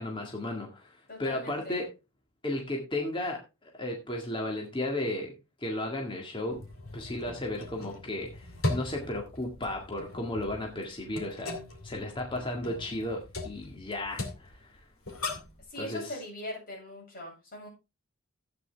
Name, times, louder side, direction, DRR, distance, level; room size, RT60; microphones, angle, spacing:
voice 1, 0.0-1.9 2.4-5.3 5.6-6.6 6.9-14.7 15.8-16.0, left 1 dB, 25° left, 0 dB, 1.9 m, -34 dB
voice 2, 1.1-1.8 15.7-17.7, left 1 dB, 40° left, -2 dB, 7.5 m, -41 dB
sound 1, 6.5-15.6, left 2 dB, 70° left, 2.5 m, -39 dB
12.5 x 8.9 x 3.5 m, 0.27 s
head